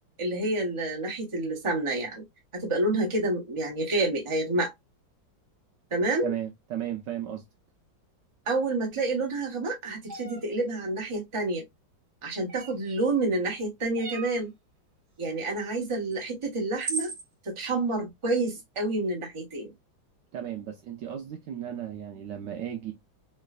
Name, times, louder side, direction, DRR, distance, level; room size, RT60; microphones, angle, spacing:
voice 1, 0.2-2.2 2.5-4.7 5.9-6.3 8.5-11.6 12.2-14.5 15.2-17.1 17.4-19.7, right 2 dB, 20° right, 0.9 m, -28 dB
voice 2, 6.2-7.4 20.3-22.9, right 10 dB, 70° right, 1.1 m, -35 dB
sound 1, 10.1-10.4 12.5-12.9 14.0-14.4 16.1-16.2 16.8-17.2, right 3 dB, 55° right, 1.6 m, -36 dB
3.3 x 3.1 x 2.4 m
omnidirectional pair, 2.2 m